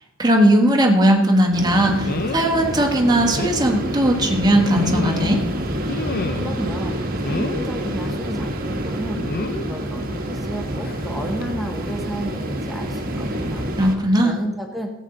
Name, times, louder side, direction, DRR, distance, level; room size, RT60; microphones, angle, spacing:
voice 1, 0.2-5.4 13.8-14.3, right 1 dB, 20° right, 1 dB, 1.4 m, -18 dB
sound 1, 1.1-1.3 2.0-2.5 2.9-3.0 3.4-3.6 4.5-5.4 5.9-6.6 7.2-7.7 9.2-9.7 10.8-11.0 11.4-11.5, left 2 dB, 45° left, 0.6 m, -28 dB
sound 2, 1.5-14.0, right 1 dB, 45° right, 1.2 m, -27 dB
voice 2, 6.2-13.7 14.2-14.9, right 1 dB, ahead, 2 dB, 1.0 m, -32 dB
14.5 x 8.4 x 3.9 m, 1.1 s
head